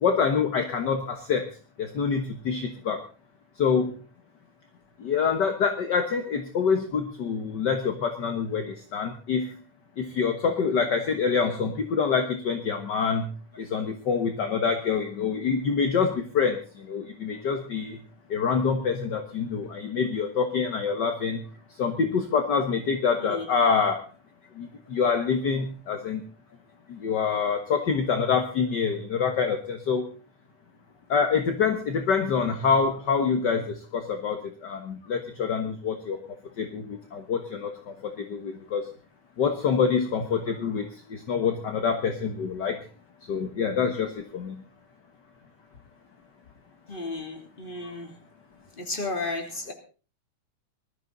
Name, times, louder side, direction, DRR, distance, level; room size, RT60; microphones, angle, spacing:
voice 1, 0.0-1.4 1.8-3.0 3.6-3.9 5.0-9.6 10.0-13.3 13.6-18.0 18.3-21.4 21.8-24.0 24.6-26.2 26.9-30.1 31.1-36.2 36.6-37.7 38.3-38.8 39.4-42.8 43.3-44.6, left 6 dB, 50° left, 6 dB, 1.4 m, -26 dB
voice 2, 46.9-48.1 48.8-49.7, left 2 dB, 15° left, 4 dB, 2.8 m, -33 dB
20.0 x 13.5 x 4.0 m, 0.36 s
omnidirectional pair, 3.4 m